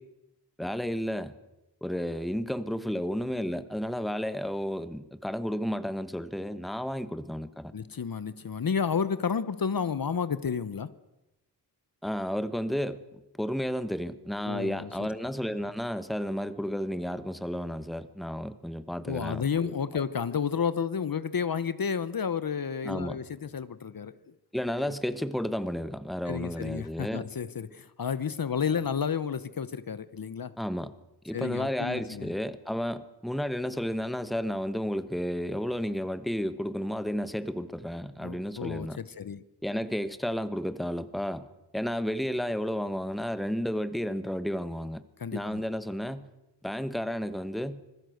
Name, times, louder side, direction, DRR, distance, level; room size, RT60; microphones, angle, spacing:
voice 1, 0.6-1.3 1.8-7.7 12.0-13.0 13.4-20.0 22.8-23.2 24.5-27.3 30.6-30.9 31.2-39.0 39.6-41.5 41.7-45.0 45.3-46.3 46.6-47.8, equal, ahead, 12 dB, 1.2 m, -32 dB
voice 2, 7.7-10.9 14.5-14.9 19.1-24.2 24.8-24.9 26.3-30.5 31.3-32.3 38.2-39.4 45.2-45.6, left 6 dB, 55° left, 15 dB, 1.0 m, -31 dB
26.0 x 20.5 x 7.9 m, 0.93 s
wide cardioid pair, 120°, 41 cm